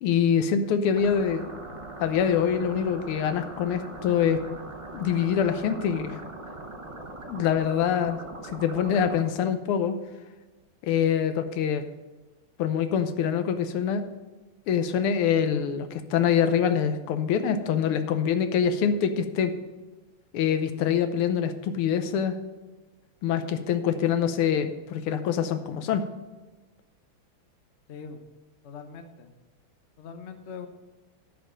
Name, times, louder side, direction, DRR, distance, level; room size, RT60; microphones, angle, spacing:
voice 1, 0.0-1.5 2.0-4.4 4.9-6.2 7.3-8.2 8.5-10.0 10.8-11.8 12.6-14.0 14.7-19.5 20.3-22.4 23.2-26.0, left 8 dB, 80° left, 10 dB, 1.7 m, -25 dB
sound 1, 0.9-9.2, right 2 dB, 50° right, 0.3 m, -41 dB
voice 2, 27.9-28.2 28.6-29.3 30.0-30.7, left 6 dB, 55° left, 7 dB, 0.8 m, -41 dB
10.5 x 5.2 x 7.4 m, 1.2 s
omnidirectional pair, 2.4 m